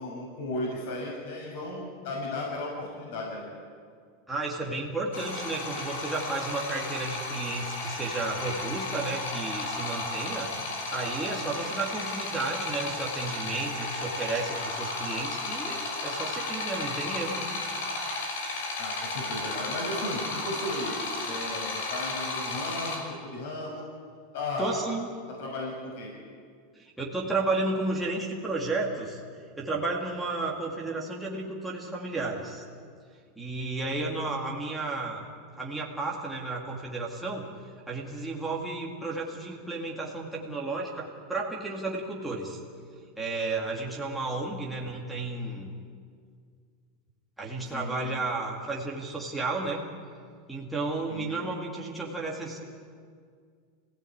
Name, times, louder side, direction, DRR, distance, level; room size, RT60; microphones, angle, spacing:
voice 1, 0.0-3.5 18.8-21.0 21.2-23.9 24.3-24.9 25.3-26.1 47.7-48.0 51.1-51.3, left 2 dB, 60° left, -2 dB, 6.4 m, -35 dB
voice 2, 4.3-10.5 10.9-17.5 24.6-25.1 26.7-29.2 29.6-32.6 33.4-35.3 35.6-37.5 37.9-42.6 43.2-45.7 47.4-49.8 50.5-52.6, right 3 dB, 5° right, -3 dB, 2.3 m, -32 dB
sound 1, 5.1-23.0, left 2 dB, 80° left, 5.9 m, -34 dB
26.0 x 17.0 x 8.7 m, 2.1 s
supercardioid pair, 170°, 0 cm